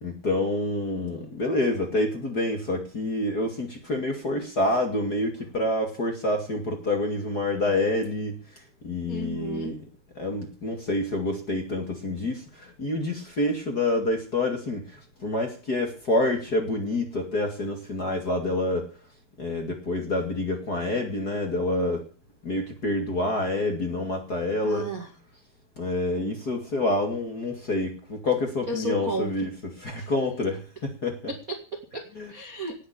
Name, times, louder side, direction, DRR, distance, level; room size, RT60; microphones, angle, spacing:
voice 1, 0.0-8.4 8.8-9.8 10.2-18.9 19.4-22.0 22.4-24.8 25.8-31.2 32.2-32.3, left 2 dB, 30° left, 4 dB, 2.2 m, -27 dB
voice 2, 9.1-9.8 24.6-25.1 28.7-29.5 30.0-30.1 31.3-32.7, right 2 dB, 35° right, 5 dB, 1.3 m, -33 dB
18.5 x 7.9 x 8.7 m, 0.38 s
omnidirectional pair, 4.7 m